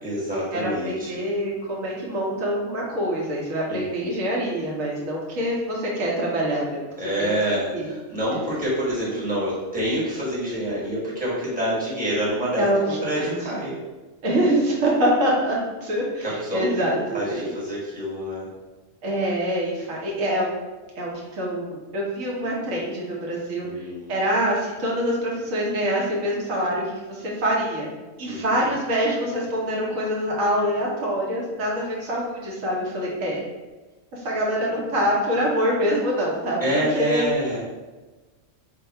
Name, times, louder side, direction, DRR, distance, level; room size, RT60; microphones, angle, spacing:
voice 1, 0.0-1.2 3.7-4.3 7.0-13.7 16.4-18.5 23.6-24.1 28.3-28.6 36.6-37.6, right 1 dB, 5° right, -7 dB, 1.1 m, -27 dB
voice 2, 0.5-6.8 7.2-7.3 7.7-7.9 12.6-13.5 14.2-17.5 19.0-20.5 21.0-27.9 28.2-33.4 34.1-37.3, equal, 80° right, -3 dB, 1.3 m, -25 dB
3.4 x 2.3 x 4.3 m, 1.2 s
omnidirectional pair, 1.4 m